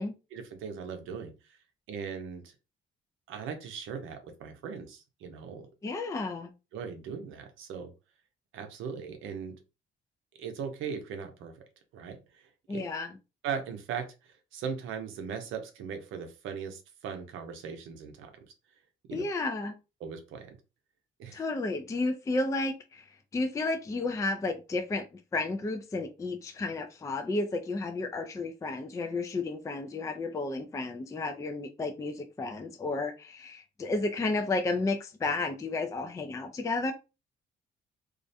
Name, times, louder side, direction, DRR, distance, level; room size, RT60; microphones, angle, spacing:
voice 1, 0.3-1.6 1.9-2.5 3.3-5.7 6.7-7.9 8.5-9.5 10.4-11.6 11.9-12.9 13.4-18.5 19.1-19.3 20.0-20.6 21.2-21.4, right 6 dB, 85° right, 0.6 m, -39 dB
voice 2, 5.8-6.5 12.7-13.2 19.1-19.7 21.3-23.1 23.3-36.9, left 3 dB, 15° left, 0.3 m, -32 dB
2.4 x 2.1 x 2.6 m
cardioid pair, 90°, 20 cm